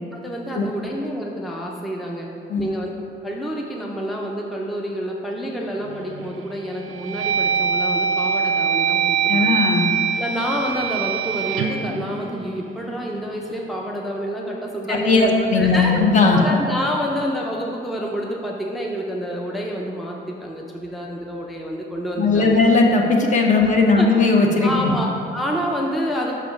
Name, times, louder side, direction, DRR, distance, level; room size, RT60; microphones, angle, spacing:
voice 1, 0.1-2.3 2.6-2.9 3.2-9.6 10.2-16.0 16.3-22.6 24.0-24.1 24.6-26.3, equal, ahead, -1 dB, 0.4 m, -28 dB
sound 1, 5.9-6.3 6.8-13.0, right 6 dB, 75° right, 0.4 m, -23 dB
voice 2, 9.3-9.9 14.9-16.4 22.2-24.9, left 3 dB, 35° left, 2 dB, 0.8 m, -17 dB
5.7 x 5.0 x 5.6 m, 2.8 s
cardioid pair, 145°, 21 cm